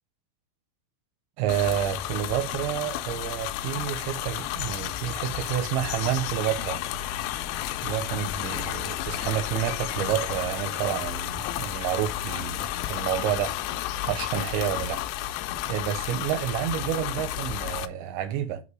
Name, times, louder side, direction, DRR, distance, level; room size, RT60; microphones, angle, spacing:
voice 1, 1.4-6.8 7.8-15.0 15.4-18.6, right 11 dB, 80° right, 2.7 m, -29 dB
sound 1, 1.5-17.9, left 13 dB, 90° left, 3.2 m, -32 dB
8.0 x 2.9 x 4.7 m
omnidirectional pair, 5.7 m